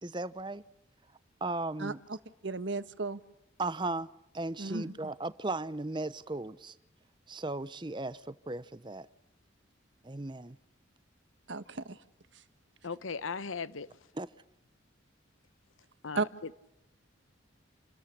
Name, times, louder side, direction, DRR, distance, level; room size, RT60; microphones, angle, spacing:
voice 1, 0.0-0.6 1.4-2.0 3.6-4.1 4.3-6.7 7.3-9.1 10.0-10.6 14.1-14.3, right 2 dB, 25° right, 0.7 m, -36 dB
voice 2, 1.8-2.2 2.4-3.2 4.6-4.9 11.5-12.0 16.1-16.3, right 3 dB, 65° right, 1.4 m, -34 dB
voice 3, 12.8-13.9 16.0-16.3, left 5 dB, 85° left, 1.0 m, -37 dB
28.5 x 13.5 x 9.9 m
head